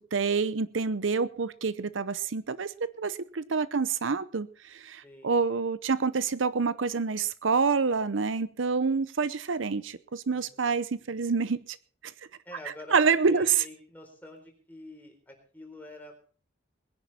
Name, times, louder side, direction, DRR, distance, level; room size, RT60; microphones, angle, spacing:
voice 1, 0.1-11.8 12.9-13.6, right 5 dB, 75° right, 16 dB, 0.7 m, -27 dB
voice 2, 5.0-5.3 10.3-10.6 12.4-13.0 13.3-16.1, left 1 dB, 10° left, 2 dB, 4.1 m, -47 dB
21.0 x 10.5 x 4.3 m, 0.40 s
head